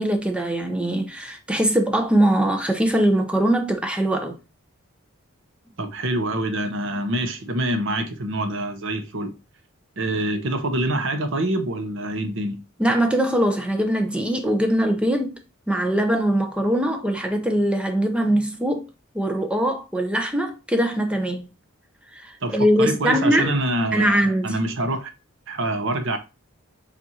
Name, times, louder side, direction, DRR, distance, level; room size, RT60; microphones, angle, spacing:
voice 1, 0.0-4.4 12.8-15.4 15.7-18.8 19.1-21.5 22.1-23.5 23.9-24.6, right 1 dB, 5° right, 0.6 m, -22 dB
voice 2, 5.8-9.3 10.0-12.6 22.4-25.1 25.5-26.2, right 1 dB, 60° right, 0.8 m, -26 dB
7.2 x 2.6 x 2.8 m
head